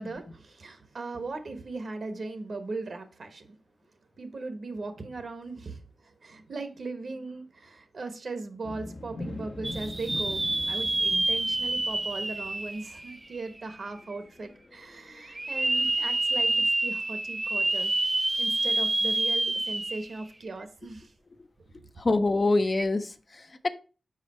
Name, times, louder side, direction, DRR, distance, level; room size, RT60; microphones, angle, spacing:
voice 1, 0.0-3.6 4.2-17.9 18.4-21.1, right 3 dB, 65° right, 1.1 m, -38 dB
sound 1, 8.6-16.2, left 2 dB, 80° left, 1.1 m, -43 dB
sound 2, 9.6-13.6 14.1-14.2 15.3-20.2 20.6-20.7 22.7-22.8, right 2 dB, 25° right, 0.3 m, -28 dB
voice 2, 22.0-23.7, left 2 dB, 40° left, 0.5 m, -26 dB
5.2 x 4.9 x 4.2 m
wide cardioid pair, 85°, 0 cm